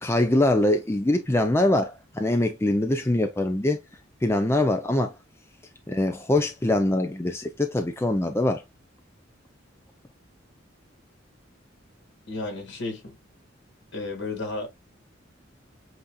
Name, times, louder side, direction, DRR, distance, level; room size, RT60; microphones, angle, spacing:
voice 1, 0.0-3.8 4.2-5.1 5.9-8.6, left 1 dB, 15° left, 0.5 m, -23 dB
voice 2, 12.3-13.1 13.9-14.7, left 2 dB, 60° left, 2.7 m, -32 dB
7.9 x 2.8 x 2.3 m
head